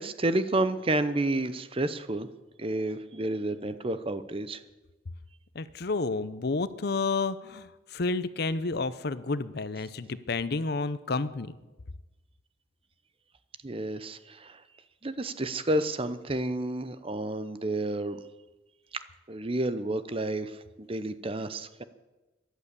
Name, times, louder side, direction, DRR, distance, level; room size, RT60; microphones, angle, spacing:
voice 1, 0.0-2.3 2.6-4.6 13.6-14.6 15.0-18.2 18.9-19.0 19.3-21.8, right 1 dB, 30° right, 13 dB, 0.7 m, -30 dB
voice 2, 5.5-11.5, left 3 dB, 55° left, 15 dB, 0.7 m, -30 dB
14.0 x 11.5 x 8.3 m, 1.1 s
head